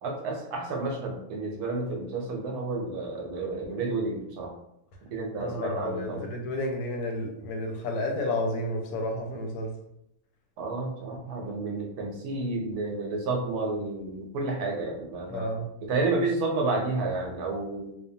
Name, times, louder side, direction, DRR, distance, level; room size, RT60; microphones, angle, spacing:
voice 1, 0.0-4.5 5.1-6.2 10.6-15.5 15.9-18.0, right 3 dB, 80° right, 1 dB, 1.1 m, -30 dB
voice 2, 5.4-9.7 15.3-15.7, left 1 dB, 80° left, 2 dB, 1.1 m, -31 dB
2.9 x 2.1 x 2.6 m, 0.80 s
omnidirectional pair, 1.6 m